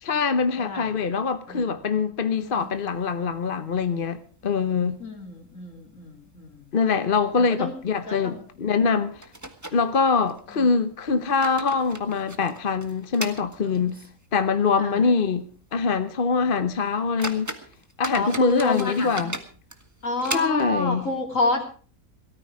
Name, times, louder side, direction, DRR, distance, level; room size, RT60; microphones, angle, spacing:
voice 1, 0.0-5.0 6.7-9.3 9.7-14.0 14.3-15.5 15.7-17.5 18.0-19.3 20.3-21.1, left 5 dB, 40° left, 1.0 m, -24 dB
voice 2, 0.6-0.9 1.5-1.7 2.4-2.7 5.0-6.7 7.4-7.7 8.0-8.5 10.5-10.7 14.8-15.1 18.1-19.4 20.0-21.6, left 2 dB, 60° left, 3.7 m, -30 dB
sound 1, 2.5-3.4 3.8-3.9 4.2-4.3 4.9-5.4 5.7-5.9 6.5-6.6 7.0-7.1 8.5-8.6 9.2-10.4 11.1-14.3 14.6-14.7 15.3-15.4 15.8-16.0 16.5-16.6 17.0-20.9, right 1 dB, 10° right, 1.4 m, -37 dB
18.0 x 13.5 x 4.8 m
omnidirectional pair, 1.5 m